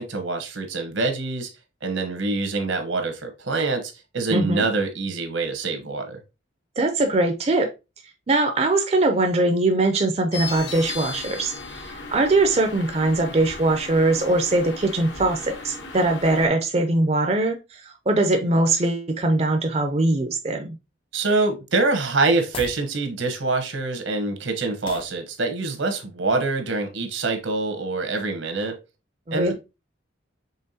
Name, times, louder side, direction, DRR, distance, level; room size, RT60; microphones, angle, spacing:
voice 1, 0.0-1.5 1.8-6.2 21.1-28.8 29.3-29.5, right 3 dB, 80° right, 1.1 m, -25 dB
voice 2, 4.3-4.6 6.8-7.7 8.3-20.8 29.3-29.5, right 2 dB, 30° right, 0.5 m, -21 dB
sound 1, 10.3-16.5, left 3 dB, 70° left, 1.0 m, -36 dB
sound 2, 22.5-22.9 24.8-25.2, left 4 dB, 25° left, 0.4 m, -36 dB
5.5 x 3.5 x 2.7 m
head